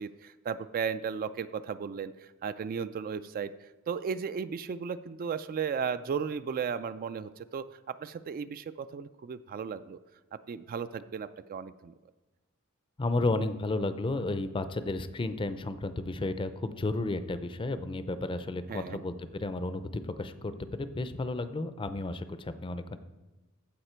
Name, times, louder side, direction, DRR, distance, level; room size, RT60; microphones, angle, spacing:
voice 1, 0.0-10.0 10.5-11.9 18.7-19.0, right 6 dB, 40° right, 13 dB, 0.3 m, -35 dB
voice 2, 13.0-23.0, left 2 dB, 25° left, 11 dB, 0.5 m, -32 dB
14.5 x 5.1 x 4.4 m, 1.1 s
head